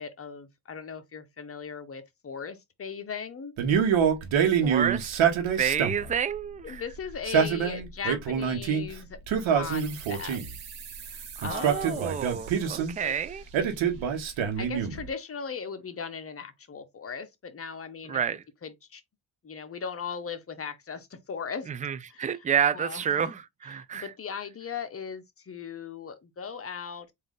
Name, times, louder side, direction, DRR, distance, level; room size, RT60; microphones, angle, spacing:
voice 1, 0.0-3.5 6.6-10.4 11.0-12.2 13.0-13.1 14.6-18.2 18.6-19.0 19.4-21.7 22.1-22.2 22.7-23.3 23.8-27.1, left 6 dB, 30° left, 0.8 m, -38 dB
Male speech man speaking, 3.6-6.1 7.1-8.8 9.3-10.6 11.4-12.9 13.5-15.0, right 7 dB, 85° right, 1.2 m, -26 dB
voice 2, 4.3-5.2 5.5-6.8 11.4-13.4 18.1-18.4 21.7-24.1, right 8 dB, 20° right, 0.3 m, -29 dB
sound 1, 9.7-15.0, right 8 dB, 65° right, 1.4 m, -46 dB
3.7 x 2.7 x 3.7 m
cardioid pair, 100°, 46 cm